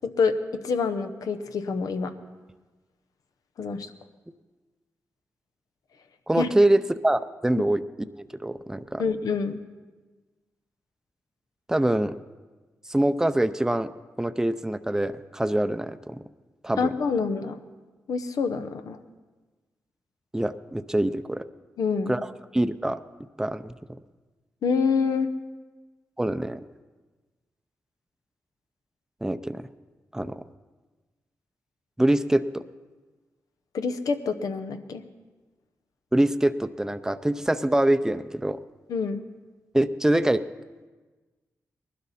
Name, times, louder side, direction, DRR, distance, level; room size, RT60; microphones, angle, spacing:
voice 1, 0.0-0.3 0.6-2.1 3.6-3.9 6.4-6.5 9.0-9.6 16.8-17.6 18.1-19.0 21.8-22.1 24.6-25.3 33.7-35.0 38.9-39.2, left 5 dB, 80° left, 8 dB, 0.9 m, -26 dB
voice 2, 6.3-7.8 8.2-9.0 11.7-12.1 12.9-13.9 14.2-16.2 16.6-16.9 20.3-21.4 22.1-22.2 22.5-23.0 23.4-23.7 26.2-26.6 29.2-29.6 30.1-30.4 32.0-32.6 36.1-38.6 39.7-40.4, right 1 dB, 10° right, 11 dB, 0.6 m, -24 dB
19.5 x 12.0 x 4.2 m, 1.3 s
cardioid pair, 55°, 6 cm